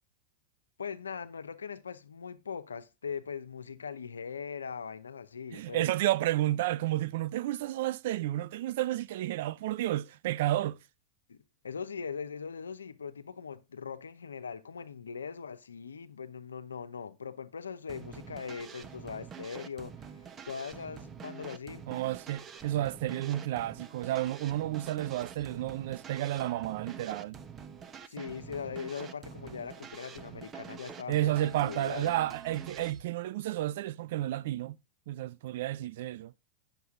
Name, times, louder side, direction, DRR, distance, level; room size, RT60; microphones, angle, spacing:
voice 1, 0.8-5.9 11.3-11.4 11.6-21.9 28.0-32.3, left 6 dB, 85° left, 0.8 m, -41 dB
voice 2, 5.5-10.8 21.9-27.4 31.1-34.8 35.1-36.3, right 14 dB, 65° right, 0.5 m, -31 dB
sound 1, 17.9-33.0, right 7 dB, 30° right, 1.1 m, -46 dB
9.4 x 6.9 x 3.7 m
hypercardioid pair, 95°, 0 cm